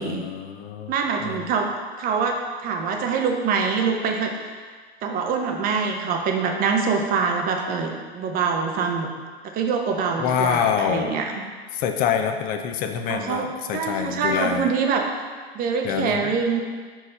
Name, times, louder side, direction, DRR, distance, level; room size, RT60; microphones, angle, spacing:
voice 1, 0.0-0.9 1.2-1.5 10.2-11.2 11.7-14.7 15.8-16.3, left 8 dB, 25° left, 5 dB, 0.4 m, -26 dB
voice 2, 0.9-1.7 2.0-2.4 2.6-4.3 5.0-9.1 9.5-11.4 13.1-13.5 13.7-15.0 15.5-16.6, right 5 dB, 25° right, 3 dB, 0.7 m, -24 dB
5.1 x 4.6 x 4.2 m, 1.5 s
hypercardioid pair, 110°, 32 cm